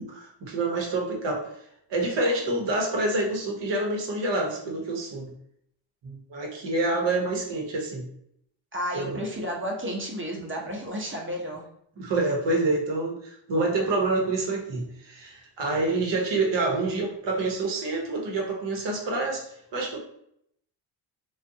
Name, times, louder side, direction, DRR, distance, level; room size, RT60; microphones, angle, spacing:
voice 1, 0.0-1.5 1.9-5.3 6.0-8.1 8.9-9.2 12.0-20.0, right 2 dB, 60° right, 0 dB, 1.0 m, -27 dB
voice 2, 8.7-11.6, equal, 25° right, -1 dB, 0.9 m, -32 dB
2.5 x 2.3 x 2.6 m, 0.72 s
supercardioid pair, 60°, 49 cm